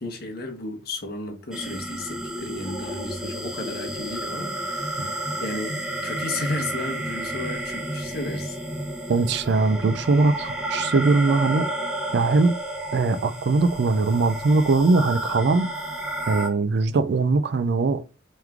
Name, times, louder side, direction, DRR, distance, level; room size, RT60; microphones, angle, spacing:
voice 1, 0.0-8.6, left 2 dB, 50° left, 0.9 m, -33 dB
sound 1, 1.5-16.5, right 1 dB, 5° right, 0.5 m, -31 dB
voice 2, 9.1-11.7 12.1-12.5 12.9-15.7 16.3-18.1, right 3 dB, 55° right, 0.4 m, -21 dB
3.5 x 3.1 x 3.5 m
head